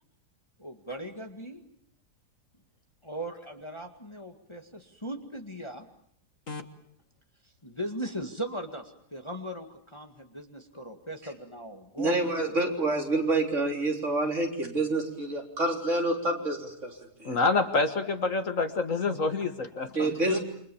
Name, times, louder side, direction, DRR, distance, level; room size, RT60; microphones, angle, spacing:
voice 1, 0.6-1.6 3.0-5.9 7.6-12.3 12.6-12.7 19.8-20.4, equal, 15° left, 4 dB, 2.0 m, -38 dB
voice 2, 12.0-16.9 17.2-17.4 20.0-20.4, right 2 dB, 45° right, 2 dB, 4.2 m, -27 dB
voice 3, 17.2-20.1, left 3 dB, 50° left, 8 dB, 1.9 m, -27 dB
29.0 x 25.5 x 7.1 m, 0.67 s
omnidirectional pair, 1.7 m